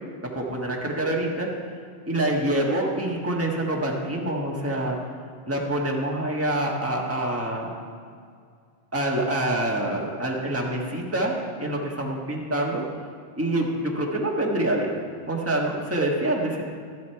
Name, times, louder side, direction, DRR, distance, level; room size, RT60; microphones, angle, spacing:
voice 1, 0.3-1.5 2.1-5.0 5.5-7.7 8.9-12.8 13.4-15.0 15.3-16.6, right 1 dB, 15° right, -2 dB, 1.5 m, -26 dB
13.0 x 11.0 x 4.6 m, 2.1 s
omnidirectional pair, 1.1 m